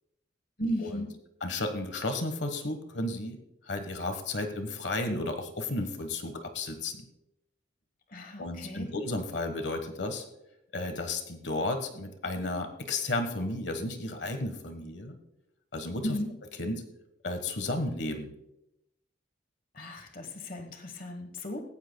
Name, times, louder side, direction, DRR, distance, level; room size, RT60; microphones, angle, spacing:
voice 1, 0.6-1.1 8.1-8.9 16.0-16.3 19.7-21.6, equal, 50° left, 4 dB, 1.2 m, -35 dB
voice 2, 1.4-3.4 3.7-7.0 8.4-10.2 10.7-15.2 15.7-16.2 16.6-16.8 17.2-18.3, left 2 dB, 70° left, 7 dB, 1.4 m, -33 dB
18.0 x 16.0 x 2.3 m, 0.88 s
head